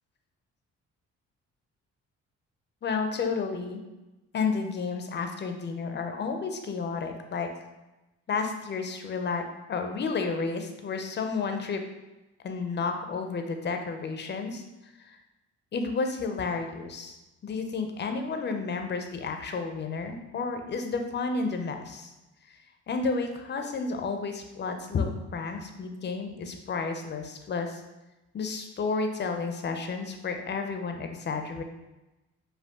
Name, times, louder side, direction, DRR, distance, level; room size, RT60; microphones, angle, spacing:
voice 1, 2.8-3.8 4.3-7.5 8.3-9.4 9.7-11.8 12.4-14.6 15.0-15.2 15.7-17.2 17.4-22.1 22.5-22.6 22.9-27.8 28.3-31.6, left 4 dB, 35° left, 6 dB, 0.6 m, -31 dB
5.2 x 2.3 x 3.5 m, 1.0 s
cardioid pair, 90°, 30 cm